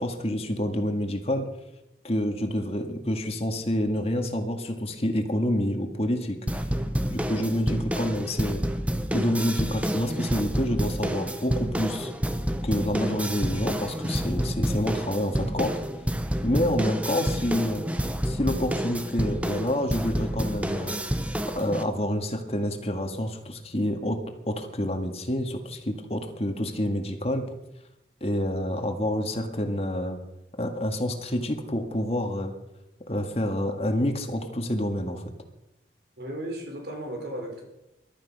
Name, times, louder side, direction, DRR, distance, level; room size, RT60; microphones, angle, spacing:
voice 1, 0.0-1.5 2.0-6.7 7.1-8.6 9.1-12.1 12.6-15.7 16.4-17.9 18.3-21.0 21.6-27.5 28.2-30.2 30.6-32.5 33.1-35.3, left 1 dB, 35° left, 5 dB, 1.9 m, -28 dB
sound 1, 6.5-21.8, equal, 10° right, 0.9 m, -29 dB
voice 2, 36.2-37.6, right 1 dB, 70° right, 2 dB, 4.4 m, -36 dB
21.0 x 12.5 x 5.4 m, 0.91 s
head